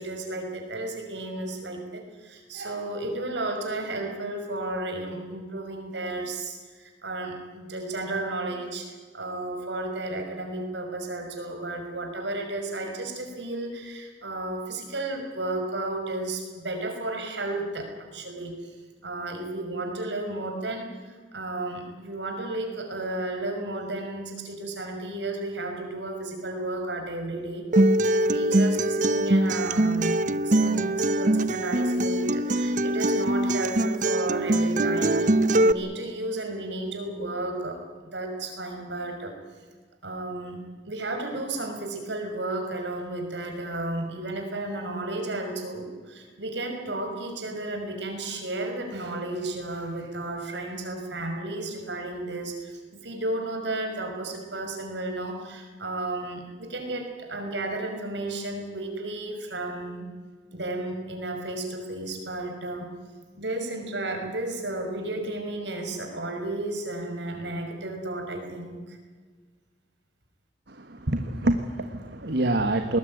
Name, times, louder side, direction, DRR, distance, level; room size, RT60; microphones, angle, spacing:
voice 1, 0.0-18.7 19.0-30.1 30.4-39.4 40.0-40.6 40.9-60.1 60.5-62.9 63.3-69.0, right 2 dB, 80° right, 4 dB, 5.8 m, -33 dB
Acoustic guitar, 27.7-35.7, right 1 dB, 45° right, 0.8 m, -23 dB
voice 2, 70.7-73.0, right 1 dB, 65° right, 7 dB, 1.5 m, -26 dB
21.0 x 19.5 x 9.3 m, 1.5 s
head